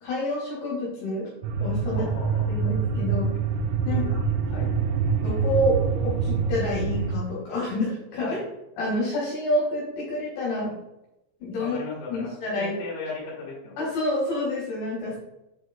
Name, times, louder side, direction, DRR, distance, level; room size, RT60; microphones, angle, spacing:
voice 1, 0.0-1.3 1.6-2.1 2.5-3.3 3.8-4.2 5.2-8.4 8.8-10.8 11.4-11.8 12.1-12.7 13.8-15.2, left 1 dB, 65° left, -5 dB, 3.3 m, -28 dB
sound 1, 1.4-7.2, right 5 dB, 85° right, 2.9 m, -25 dB
voice 2, 1.9-2.7 3.9-4.9 8.2-8.4 11.6-13.8, left 4 dB, 50° left, -5 dB, 2.7 m, -37 dB
7.2 x 6.1 x 2.2 m, 0.91 s
omnidirectional pair, 6.0 m